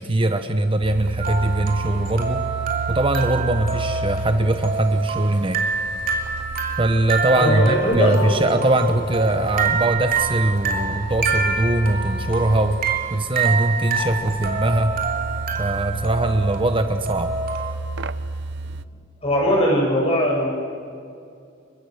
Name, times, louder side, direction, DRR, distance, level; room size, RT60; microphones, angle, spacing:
voice 1, 0.0-2.4 2.9-5.6 6.8-12.8 13.1-15.0 15.6-17.3, right 1 dB, 30° right, 8 dB, 1.1 m, -21 dB
sound 1, 0.8-18.9, right 3 dB, 65° right, 0.7 m, -33 dB
sound 2, 1.2-17.7, right 5 dB, 50° right, 3.3 m, -27 dB
voice 2, 7.3-8.5 19.2-20.5, equal, 35° left, -1 dB, 7.8 m, -20 dB
29.5 x 24.5 x 6.6 m, 2.4 s
head